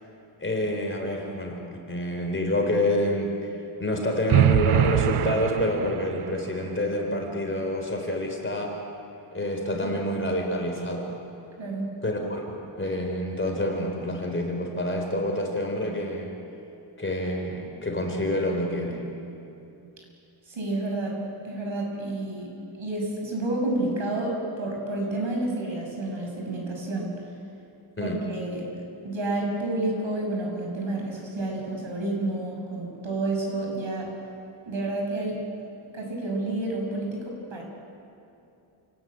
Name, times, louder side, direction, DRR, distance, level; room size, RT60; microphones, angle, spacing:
voice 1, 0.4-3.5 3.8-8.8 9.3-11.2 12.0-16.3 17.0-19.0 28.0-28.2, left 1 dB, 25° left, 2 dB, 4.0 m, -28 dB
sound 1, 4.3-6.3, right 12 dB, 90° right, 0.7 m, -23 dB
voice 2, 11.6-11.9 20.5-21.2 21.4-27.1 28.0-28.7 29.0-34.1 34.7-35.4 35.9-37.6, right 2 dB, 65° right, 0 dB, 6.9 m, -30 dB
28.5 x 19.0 x 9.0 m, 2.7 s
wide cardioid pair, 145°, 49 cm